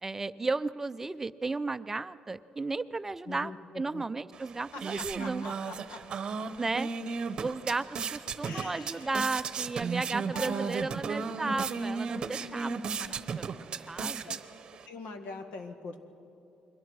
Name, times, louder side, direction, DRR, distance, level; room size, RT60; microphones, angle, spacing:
voice 1, 0.0-5.5 6.6-6.9 7.4-7.9 8.1-14.4, right 3 dB, 15° right, 14 dB, 0.4 m, -34 dB
voice 2, 3.3-4.0 4.7-6.0 8.4-9.4 10.3-10.8 11.4-11.7 14.2-14.4 14.9-16.0, left 3 dB, 80° left, 6 dB, 1.9 m, -43 dB
sound 1, 4.3-14.9, right 5 dB, 40° right, 0.9 m, -35 dB
29.0 x 22.5 x 4.8 m, 2.8 s
cardioid pair, 140°, 2 cm